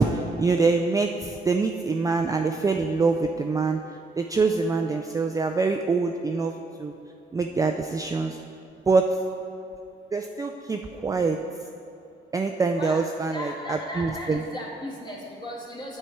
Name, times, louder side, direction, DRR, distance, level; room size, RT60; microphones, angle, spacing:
voice 1, 0.0-3.8 4.2-6.5 6.8-6.9 7.3-8.4 8.9-9.2 10.1-11.4 12.3-14.4, right 4 dB, 15° right, 4 dB, 0.3 m, -24 dB
voice 2, 12.8-16.0, left 1 dB, 20° left, -2 dB, 1.7 m, -37 dB
7.5 x 6.7 x 4.5 m, 2.6 s
cardioid pair, 90°, 20 cm